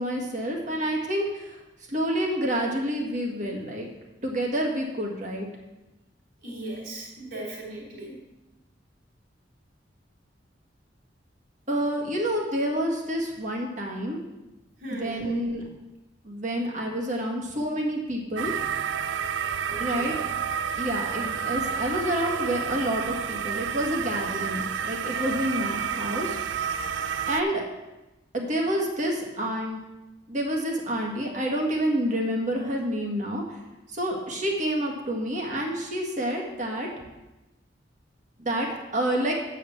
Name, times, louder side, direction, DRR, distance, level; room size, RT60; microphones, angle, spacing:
voice 1, 0.0-1.6 1.9-3.9 4.2-5.5 11.7-14.2 14.9-15.6 16.2-18.5 19.8-20.3 20.8-26.4 27.3-27.6 28.3-29.8 30.3-33.6 33.9-36.9 38.4-38.7 38.9-39.3, equal, 40° right, 0 dB, 1.7 m, -28 dB
voice 2, 6.4-8.2 14.8-15.3 19.6-20.2, right 1 dB, 60° right, -11 dB, 3.5 m, -37 dB
sound 1, 18.4-27.4, right 7 dB, 85° right, 0.4 m, -30 dB
8.6 x 5.1 x 7.3 m, 1.0 s
head